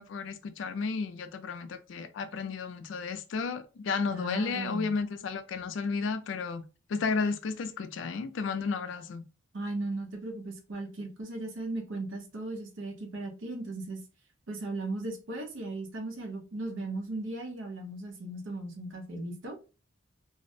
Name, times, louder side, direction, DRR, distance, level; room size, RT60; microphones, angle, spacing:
voice 1, 0.0-6.6 6.9-9.2, left 4 dB, 75° left, 0.4 m, -33 dB
voice 2, 4.1-4.9 9.5-14.0 14.5-19.6, right 2 dB, 85° right, 0.7 m, -37 dB
2.4 x 2.0 x 2.6 m
head